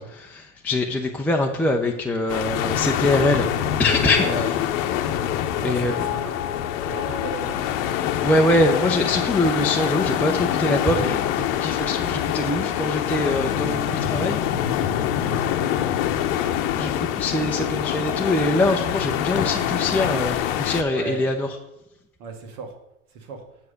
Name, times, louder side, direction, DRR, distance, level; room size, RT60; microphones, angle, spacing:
voice 1, 0.0-3.4 3.8-4.6 5.6-6.1 8.2-14.4 16.8-21.6, left 1 dB, 5° left, 0 dB, 0.5 m, -23 dB
sound 1, 2.3-20.8, left 10 dB, 60° left, 0.8 m, -25 dB
sound 2, 3.9-14.2 14.5-15.1, left 13 dB, 90° left, 0.5 m, -35 dB
voice 2, 5.6-6.3 6.8-7.8 15.2-15.4 20.9-21.3 22.2-22.7 23.1-23.4, right 4 dB, 75° right, 4 dB, 1.8 m, -34 dB
7.2 x 4.8 x 6.4 m, 0.89 s
hypercardioid pair, 100°, 44 cm